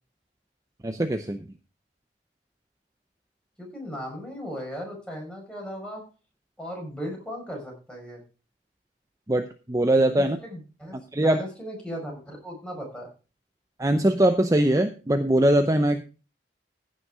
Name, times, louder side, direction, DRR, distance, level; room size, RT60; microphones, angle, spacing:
voice 1, 0.8-1.5 9.3-10.4 10.9-11.4 13.8-16.0, right 1 dB, 20° right, 8 dB, 0.7 m, -22 dB
voice 2, 3.6-6.0 6.6-8.2 10.4-11.0 11.2-13.1, equal, 5° left, 0 dB, 5.4 m, -36 dB
15.0 x 6.5 x 4.9 m, 0.34 s
head